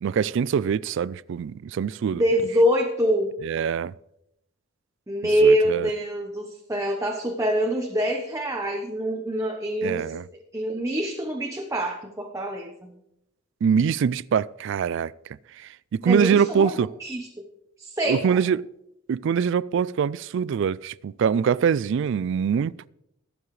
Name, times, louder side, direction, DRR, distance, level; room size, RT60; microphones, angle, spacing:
voice 1, 0.0-2.2 3.4-3.9 5.2-5.9 9.8-10.2 13.6-15.1 15.5-16.9 18.1-18.6 19.1-22.9, right 7 dB, 60° right, 0.3 m, -24 dB
voice 2, 2.1-3.3 5.1-10.0 10.5-12.9 16.1-16.7 17.0-17.3 17.8-18.4, equal, 15° right, 0.9 m, -25 dB
21.5 x 7.2 x 3.2 m
head